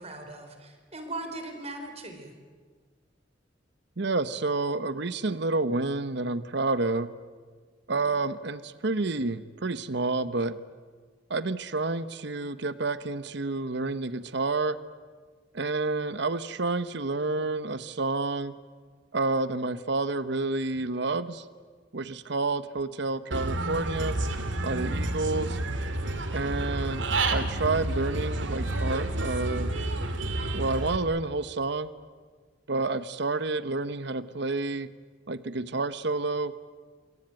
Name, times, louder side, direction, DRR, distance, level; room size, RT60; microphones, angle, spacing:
voice 1, 0.0-2.3, right 2 dB, 35° right, 5 dB, 4.4 m, -39 dB
voice 2, 4.0-7.1 7.9-10.6 11.3-14.8 15.5-18.5 19.1-21.4 21.9-24.2 24.6-25.6 26.3-29.7 30.5-31.9 32.7-34.9 35.3-36.5, right 3 dB, 65° right, 13 dB, 1.0 m, -29 dB
Human voice / Bird, 23.3-31.0, right 2 dB, 80° right, 2.5 m, -30 dB
27.5 x 24.0 x 9.1 m, 1.5 s
head